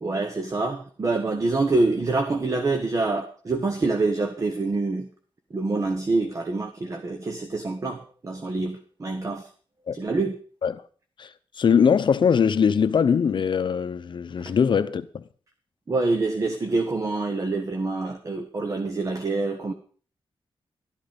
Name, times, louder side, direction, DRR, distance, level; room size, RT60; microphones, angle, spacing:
voice 1, 0.0-5.1 5.5-9.5 9.9-10.4 15.9-19.7, right 3 dB, 35° right, 1.0 m, -26 dB
voice 2, 11.6-15.2, left 7 dB, 60° left, 0.7 m, -21 dB
12.5 x 10.5 x 5.2 m
wide cardioid pair, 130°, 9 cm